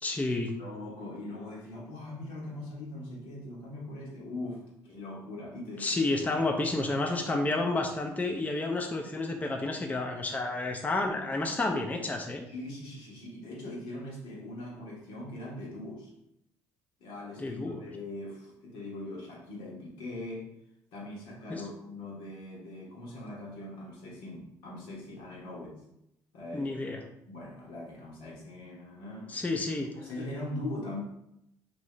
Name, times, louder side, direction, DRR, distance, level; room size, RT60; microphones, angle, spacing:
voice 1, 0.0-0.5 5.8-12.5 17.4-17.8 21.5-21.6 26.5-27.0 29.3-29.9, left 2 dB, 20° left, 2 dB, 0.4 m, -30 dB
voice 2, 0.6-6.0 12.5-16.1 17.0-20.5 20.9-25.8 26.3-26.7 27.3-29.4 29.9-31.0, left 1 dB, 75° left, -3 dB, 1.0 m, -41 dB
2.7 x 2.6 x 3.2 m, 0.82 s
hypercardioid pair, 60°, 8 cm